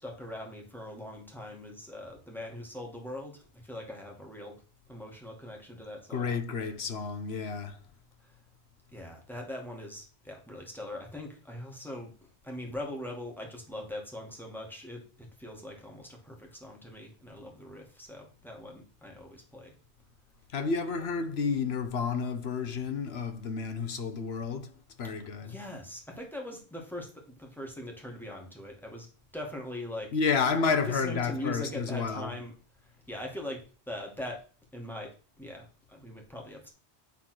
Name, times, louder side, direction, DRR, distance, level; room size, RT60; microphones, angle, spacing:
voice 1, 0.0-4.6 4.9-6.4 8.9-12.1 12.4-19.8 25.4-29.1 29.3-30.1 30.7-32.5 33.1-34.4 34.7-36.7, left 1 dB, ahead, 2.0 m, -41 dB
voice 2, 6.1-7.8 20.5-24.7 25.0-25.6 30.1-32.4, left 5 dB, 65° left, 1.2 m, -30 dB
8.9 x 4.0 x 6.0 m
omnidirectional pair, 1.2 m